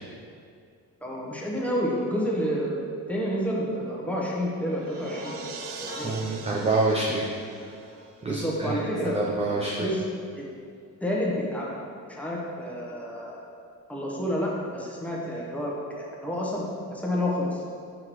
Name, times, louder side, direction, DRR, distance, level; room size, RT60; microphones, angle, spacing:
voice 1, 1.0-5.3 5.8-6.2 8.3-10.0 10.4-10.5 11.0-11.8 12.1-13.4 13.9-16.6 16.9-17.6, equal, 5° left, -4 dB, 1.0 m, -29 dB
sound 1, 4.2-8.6, right 6 dB, 75° right, 0.6 m, -44 dB
sound 2, 4.9-9.1, left 2 dB, 30° left, 0.8 m, -44 dB
voice 2, 6.0-7.3 8.2-8.8 9.1-9.9, right 2 dB, 20° right, -3 dB, 0.5 m, -26 dB
6.5 x 5.7 x 3.1 m, 2.3 s
cardioid pair, 135°, 33 cm